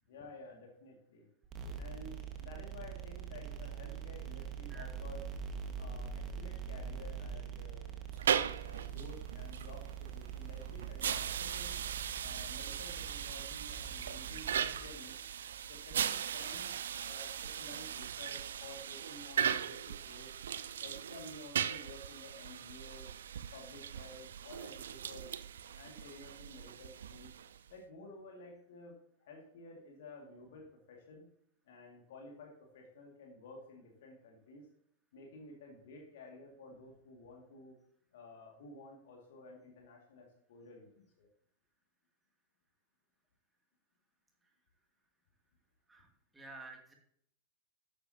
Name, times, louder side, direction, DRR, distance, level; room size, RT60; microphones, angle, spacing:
voice 1, 0.1-1.3 1.8-5.2 5.8-7.9 8.6-11.8 12.2-15.1 15.7-16.7 17.0-20.3 20.8-23.1 23.5-25.3 25.8-27.4 27.7-29.0 29.2-31.3 31.6-34.7 35.1-37.8 38.1-41.3, left 2 dB, 55° left, 0 dB, 2.2 m, -53 dB
sound 1, 1.4-18.5, right 7 dB, 30° right, 1.7 m, -45 dB
sound 2, 8.1-27.7, right 8 dB, 65° right, 0.4 m, -39 dB
voice 2, 46.3-46.9, right 3 dB, 10° right, 1 dB, 2.6 m, -50 dB
12.5 x 10.0 x 2.9 m, 0.69 s
figure-of-eight pair, 90°, 0 cm